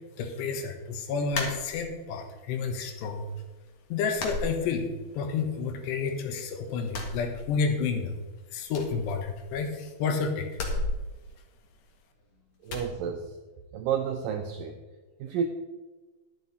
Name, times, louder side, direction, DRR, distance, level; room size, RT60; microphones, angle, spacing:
voice 1, 0.2-3.3 3.9-4.9 5.1-8.2 8.5-10.5, left 5 dB, 85° left, 5 dB, 3.4 m, -30 dB
sound 1, 1.3-2.2 2.6-3.3 3.5-3.7 4.1-5.3 5.6-6.4 6.8-8.0 8.2-8.3 8.7-9.8 10.5-12.2 12.7-12.9, left 2 dB, 55° left, 1.9 m, -36 dB
voice 2, 12.6-13.3 13.7-14.8 15.2-15.5, right 7 dB, 85° right, 4 dB, 1.9 m, -30 dB
11.0 x 11.0 x 4.1 m, 1.2 s
omnidirectional pair, 4.8 m